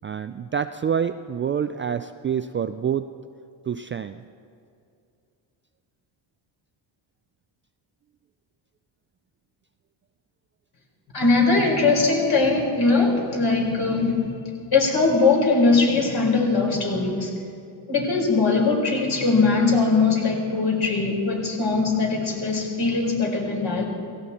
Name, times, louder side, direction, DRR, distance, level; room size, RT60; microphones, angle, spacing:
voice 1, 0.0-3.1 3.7-4.2, right 7 dB, 30° right, 10 dB, 0.3 m, -27 dB
voice 2, 11.1-14.3 14.7-17.3 17.9-23.8, left 3 dB, 50° left, 0 dB, 4.4 m, -21 dB
17.5 x 16.5 x 4.2 m, 2.4 s
cardioid pair, 95°, 47 cm